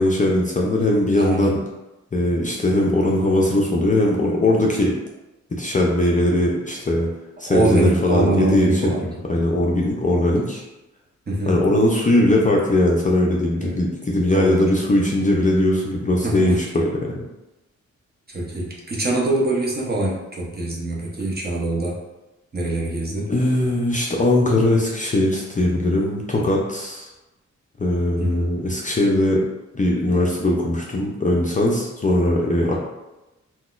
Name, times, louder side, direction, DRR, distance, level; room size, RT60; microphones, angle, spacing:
voice 1, 0.0-1.6 2.1-5.0 5.6-7.1 7.4-9.0 9.3-10.6 11.5-17.2 23.3-27.1 27.8-29.4 29.7-32.8, left 1 dB, 25° left, -2 dB, 0.4 m, -20 dB
voice 2, 1.2-1.5 7.4-9.2 11.3-11.6 13.5-13.8 14.3-14.7 16.2-16.6 18.3-22.0 22.5-23.3 28.2-28.7, right 2 dB, 35° right, -4 dB, 0.8 m, -23 dB
3.9 x 2.2 x 2.4 m, 1.0 s
wide cardioid pair, 95°, 29 cm